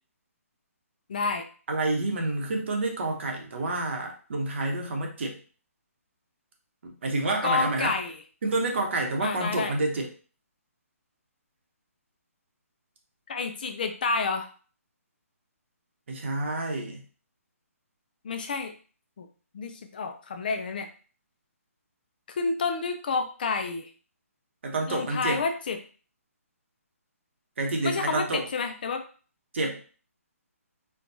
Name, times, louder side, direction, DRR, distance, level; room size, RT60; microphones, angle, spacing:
voice 1, 1.1-1.4 7.4-8.2 9.2-9.7 13.3-14.5 18.2-18.7 19.2-19.3 19.5-20.9 22.3-23.9 24.9-25.8 27.8-29.0, left 4 dB, 35° left, 7 dB, 0.4 m, -29 dB
voice 2, 1.7-5.4 6.8-8.0 8.4-10.1 16.1-17.0 24.6-25.4 27.6-28.5 29.5-29.8, right 2 dB, 50° right, 2 dB, 0.9 m, -28 dB
4.5 x 2.3 x 2.7 m, 0.39 s
hypercardioid pair, 170°, 8 cm